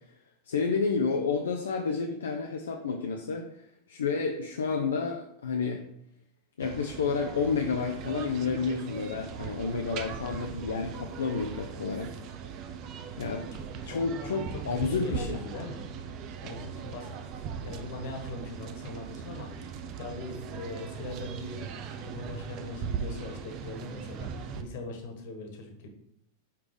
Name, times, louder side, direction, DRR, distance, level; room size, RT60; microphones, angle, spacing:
voice 1, 0.5-5.8 6.6-12.1 13.2-13.4 13.8-15.4, left 5 dB, 65° left, 2 dB, 0.7 m, -30 dB
sound 1, 6.6-24.6, right 7 dB, 40° right, 0.7 m, -39 dB
voice 2, 13.6-17.2 17.5-25.9, left 2 dB, 50° left, 3 dB, 1.6 m, -41 dB
5.9 x 4.8 x 4.9 m, 0.74 s
figure-of-eight pair, 90°, 0 cm